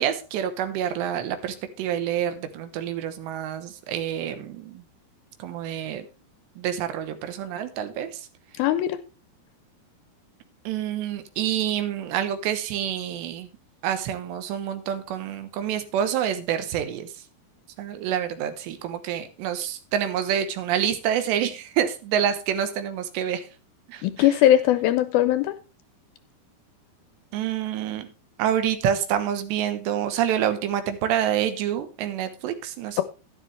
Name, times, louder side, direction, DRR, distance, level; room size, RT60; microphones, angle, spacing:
voice 1, 0.0-4.8 5.4-6.1 6.6-8.3 10.7-13.5 13.8-17.1 17.8-23.5 23.9-24.0 27.3-28.1 28.4-33.0, right 9 dB, 90° right, 9 dB, 3.3 m, -27 dB
voice 2, 8.6-9.0 24.0-25.5, left 12 dB, 80° left, 12 dB, 2.2 m, -20 dB
11.5 x 11.0 x 3.2 m, 0.32 s
omnidirectional pair, 4.8 m